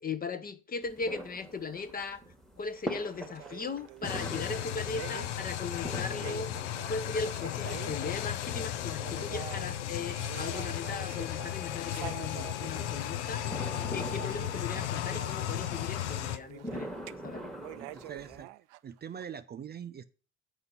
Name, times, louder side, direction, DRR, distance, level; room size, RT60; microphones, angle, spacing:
voice 1, 0.0-2.2 2.6-6.5 6.9-17.6, left 4 dB, 25° left, 0.8 m, -38 dB
sound 1, 0.8-18.4, equal, ahead, 1.4 m, -45 dB
sound 2, 3.1-8.5 8.8-17.1 17.6-19.2, right 18 dB, 70° right, 0.5 m, -47 dB
sound 3, 4.0-16.4, left 11 dB, 80° left, 0.6 m, -35 dB
voice 2, 17.7-18.5 18.8-20.0, right 8 dB, 30° right, 0.6 m, -44 dB
8.1 x 4.8 x 5.5 m
hypercardioid pair, 65°, 35 cm